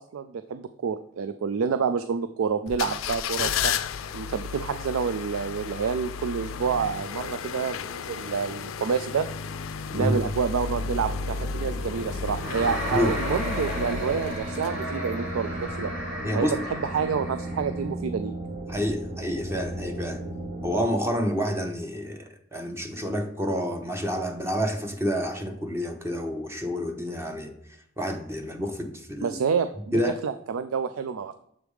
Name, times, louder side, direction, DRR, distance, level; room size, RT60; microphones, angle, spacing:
voice 1, 0.0-3.7 4.1-9.3 9.9-15.9 16.3-18.3 29.2-31.3, right 6 dB, 90° right, 10 dB, 0.4 m, -28 dB
sound 1, 2.7-15.1 15.6-15.7, left 6 dB, 80° left, 0.4 m, -33 dB
sound 2, 10.6-20.8, right 1 dB, 50° right, 1.2 m, -36 dB
sound 3, 12.4-17.7, equal, 70° right, 2.0 m, -34 dB
voice 2, 16.2-16.5 18.7-20.2 20.6-22.2 22.5-27.5 28.0-29.4 29.9-30.1, equal, 10° right, 3 dB, 0.8 m, -28 dB
7.2 x 3.4 x 4.7 m, 0.71 s
head